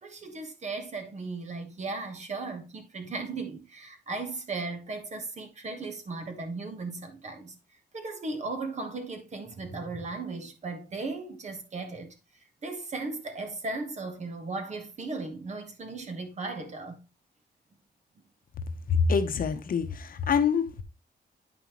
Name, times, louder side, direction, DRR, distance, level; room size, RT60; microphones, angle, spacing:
voice 1, 0.0-7.5 7.9-12.1 12.6-17.0, right 3 dB, 40° right, 1.4 m, -36 dB
voice 2, 18.9-20.8, left 6 dB, 55° left, 0.8 m, -25 dB
9.2 x 5.5 x 3.0 m
wide cardioid pair, 140°, 17 cm